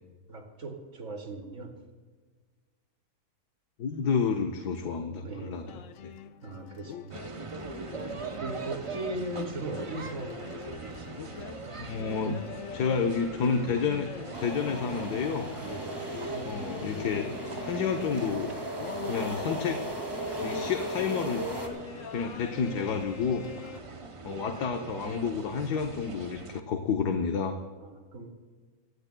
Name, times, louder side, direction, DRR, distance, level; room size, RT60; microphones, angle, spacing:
voice 1, 0.3-1.8 5.2-5.7 6.4-7.2 8.4-10.4 10.7-11.5 15.6-16.1 23.6-24.3 27.8-28.3, right 2 dB, 55° right, 2 dB, 2.6 m, -39 dB
voice 2, 3.8-5.6 6.0-6.1 11.8-12.4 12.7-14.1 14.4-15.5 16.4-18.5 19.1-19.9 20.4-21.5 22.1-23.4 24.2-27.6, left 6 dB, 90° left, 4 dB, 1.5 m, -30 dB
sound 1, 5.7-23.8, left 6 dB, 60° left, 1.0 m, -43 dB
sound 2, 7.1-26.6, right 4 dB, 35° right, 0.5 m, -42 dB
sound 3, 14.3-21.7, right 1 dB, 15° right, 2.3 m, -37 dB
25.0 x 16.5 x 2.3 m, 1.5 s
omnidirectional pair, 1.7 m